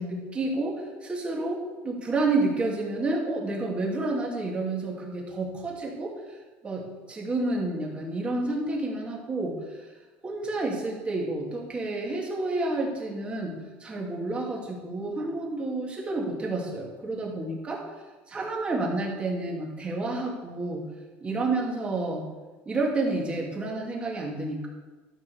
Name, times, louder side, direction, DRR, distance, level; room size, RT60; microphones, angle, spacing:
voice 1, 0.0-6.1 6.6-9.8 10.2-17.8 18.3-20.8 21.2-22.2 22.7-24.7, right 2 dB, 20° right, -2 dB, 2.6 m, -30 dB
12.5 x 5.8 x 6.9 m, 1.3 s
cardioid pair, 135°, 5 cm